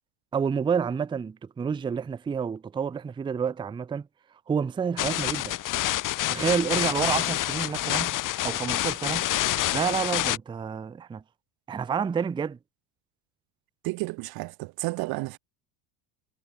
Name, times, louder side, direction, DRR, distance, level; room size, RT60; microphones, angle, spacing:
voice 1, 0.3-4.1 4.5-5.6 6.3-8.1 8.4-9.3 9.7-11.2 11.7-12.6, right 6 dB, 10° right, 0.5 m, -29 dB
sound 1, 5.0-10.4, left 14 dB, 40° left, 1.2 m, -27 dB
voice 2, 13.8-15.4, right 23 dB, 50° right, 0.8 m, -32 dB
supercardioid pair, 100°, 48 cm